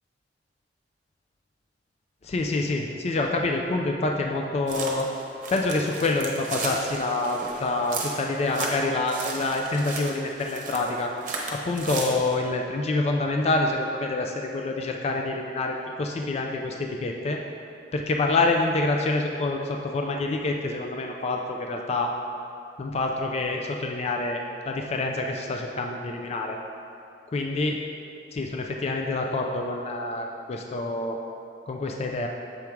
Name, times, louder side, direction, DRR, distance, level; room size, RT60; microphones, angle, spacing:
voice 1, 2.2-5.1 5.5-11.1 11.5-17.4 17.9-22.1 22.8-26.6 27.3-27.8 28.3-31.2 31.7-32.3, left 2 dB, 35° left, 2 dB, 0.4 m, -27 dB
sound 1, 4.7-12.3, right 3 dB, 50° right, 0.9 m, -35 dB
6.9 x 3.6 x 4.5 m, 2.5 s
head